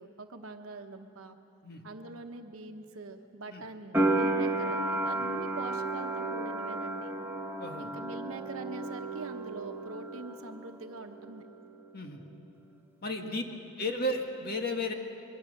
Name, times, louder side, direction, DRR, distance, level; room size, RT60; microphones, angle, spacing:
voice 1, 0.0-1.4 1.8-7.1 7.8-11.4 13.2-13.9, right 2 dB, 80° right, 5 dB, 1.0 m, -44 dB
sound 1, 3.9-10.8 11.0-11.9, right 2 dB, 10° right, 1.3 m, -32 dB
voice 2, 13.0-13.4 13.8-14.9, left 1 dB, 50° left, 3 dB, 1.7 m, -33 dB
25.0 x 22.5 x 6.6 m, 2.7 s
head